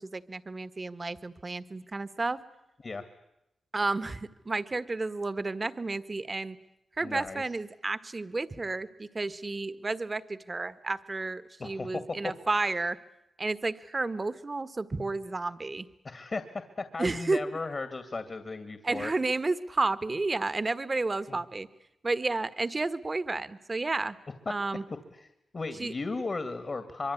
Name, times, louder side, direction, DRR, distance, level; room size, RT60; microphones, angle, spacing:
voice 1, 0.0-2.4 3.7-6.6 7.0-13.0 13.4-15.9 17.0-17.4 18.8-21.7 22.0-24.2 24.5-24.8 25.8-25.9, right 3 dB, 40° right, 14 dB, 1.6 m, -31 dB
voice 2, 7.0-7.4 11.6-12.7 16.0-16.4 16.8-19.1 21.3-21.4 24.5-24.6 25.1-25.3 25.5-27.1, left 3 dB, 50° left, 10 dB, 2.4 m, -36 dB
25.0 x 23.0 x 9.9 m, 0.85 s
cardioid pair, 50°, 0 cm